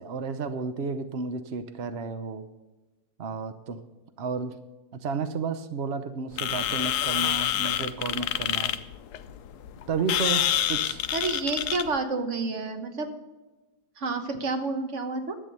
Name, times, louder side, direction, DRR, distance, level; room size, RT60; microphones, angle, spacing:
voice 1, 0.0-2.5 3.2-3.8 4.2-4.6 4.9-8.8 9.9-11.0, right 5 dB, 70° right, 10 dB, 0.6 m, -32 dB
sound 1, 6.3-12.0, left 11 dB, 70° left, 1.0 m, -27 dB
voice 2, 11.1-13.1 14.0-15.4, right 3 dB, 40° right, 7 dB, 1.4 m, -29 dB
11.0 x 8.4 x 6.8 m, 1.1 s
omnidirectional pair, 2.1 m